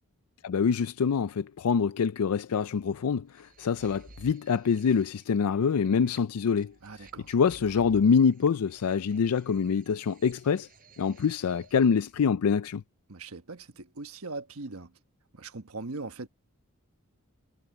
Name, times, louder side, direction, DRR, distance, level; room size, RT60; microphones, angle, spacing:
voice 1, 0.4-6.7 7.3-10.7 11.0-12.8, left 6 dB, 90° left, 0.4 m, -25 dB
sound 1, 3.3-12.1, right 2 dB, 40° right, 4.6 m, -55 dB
voice 2, 6.8-7.3 13.1-14.9 15.3-16.3, right 3 dB, 75° right, 1.3 m, -40 dB
head